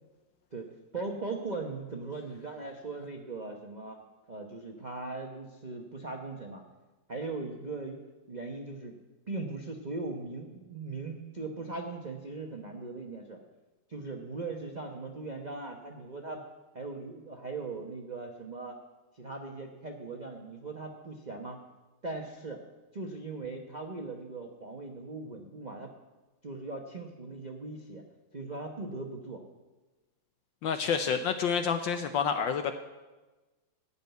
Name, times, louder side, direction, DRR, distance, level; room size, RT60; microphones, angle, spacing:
voice 1, 0.5-4.0 4.3-6.6 7.1-9.0 9.3-13.4 13.9-16.4 16.7-18.8 19.1-21.6 22.0-22.6 22.9-25.9 26.4-28.0 28.3-29.4, right 3 dB, 35° right, 2 dB, 0.7 m, -39 dB
voice 2, 30.6-32.7, left 6 dB, 70° left, 8 dB, 1.3 m, -28 dB
15.5 x 5.6 x 9.2 m, 1.2 s
omnidirectional pair, 2.4 m